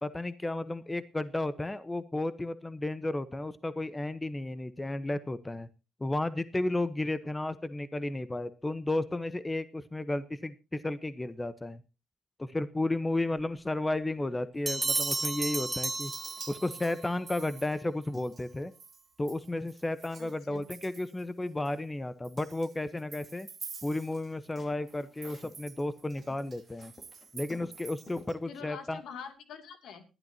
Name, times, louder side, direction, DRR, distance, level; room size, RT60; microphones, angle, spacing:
voice 1, 0.0-5.7 6.0-11.8 12.4-16.1 16.5-18.7 19.2-23.5 23.8-26.9 27.3-29.0, left 2 dB, 15° left, 14 dB, 0.9 m, -33 dB
Bell, 14.7-16.9, right 2 dB, 10° right, 1.4 m, -33 dB
Chink clink, 14.7-20.4 20.6-21.2 21.7-21.8 22.2-24.6 24.9-28.3, right 5 dB, 40° right, 1.3 m, -43 dB
voice 2, 20.2-20.6 28.5-30.0, left 6 dB, 75° left, 9 dB, 2.6 m, -45 dB
sound 1, 24.1-25.6 25.9-28.4, left 2 dB, 35° left, 4.1 m, -52 dB
19.5 x 12.0 x 2.8 m, 0.30 s
cardioid pair, 90°, 0 cm